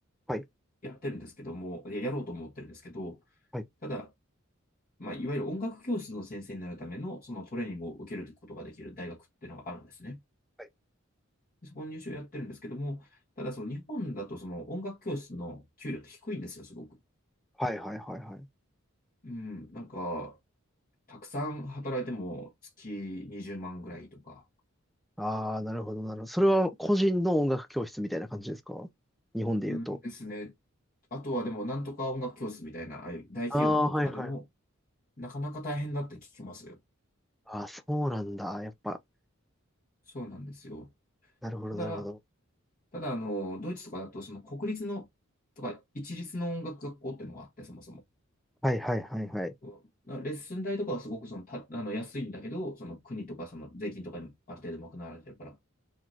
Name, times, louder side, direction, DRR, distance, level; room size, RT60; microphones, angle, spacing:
voice 1, 0.8-3.2 3.8-4.1 5.0-10.2 11.6-13.1 13.4-17.0 19.2-20.4 21.1-22.5 22.8-24.4 29.7-30.5 31.1-34.4 35.2-36.8 40.1-40.9 41.7-42.1 42.9-45.1 45.6-48.0 49.6-49.8 50.1-55.6, equal, 45° left, 1.5 m, -37 dB
voice 2, 17.6-18.5 25.2-28.9 29.3-30.0 33.5-34.3 37.5-39.0 41.4-42.1 48.6-49.5, equal, ahead, 0.5 m, -30 dB
4.0 x 3.1 x 2.8 m
head